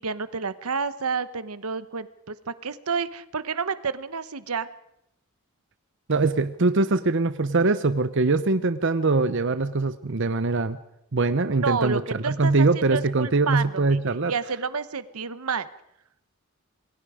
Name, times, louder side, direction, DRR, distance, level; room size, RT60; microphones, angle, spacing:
voice 1, 0.0-4.7 11.5-14.0 14.3-15.7, right 5 dB, 80° right, 14 dB, 1.0 m, -30 dB
voice 2, 6.1-10.8 11.1-14.3, right 3 dB, 55° right, 11 dB, 0.8 m, -22 dB
28.0 x 21.0 x 5.0 m, 0.80 s
head